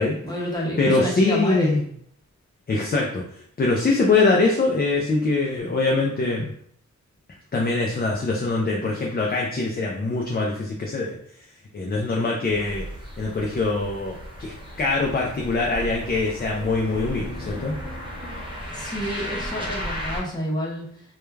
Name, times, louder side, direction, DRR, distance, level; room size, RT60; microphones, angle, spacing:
voice 1, 0.2-1.7 18.7-20.8, equal, 15° left, -4 dB, 0.9 m, -28 dB
voice 2, 0.8-1.8 2.7-6.5 7.5-11.5 11.7-12.8 13.2-17.7, left 3 dB, 30° left, -1 dB, 0.4 m, -23 dB
sound 1, 12.4-20.2, equal, 15° right, 0.7 m, -35 dB
2.2 x 2.2 x 3.1 m, 0.64 s
wide cardioid pair, 90°, 30 cm